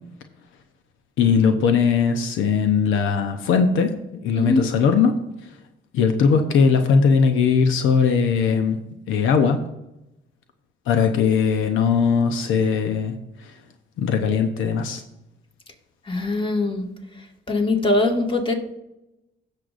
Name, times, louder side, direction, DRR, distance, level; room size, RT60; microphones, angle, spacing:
voice 1, 1.2-5.2 5.9-8.8 9.1-9.6 10.9-13.2 14.0-15.0, left 6 dB, 85° left, 6 dB, 0.8 m, -19 dB
voice 2, 4.3-4.7 16.1-16.9 17.5-18.5, left 2 dB, 25° left, 2 dB, 1.9 m, -21 dB
16.5 x 6.6 x 2.5 m, 0.91 s
cardioid pair, 90°, 20 cm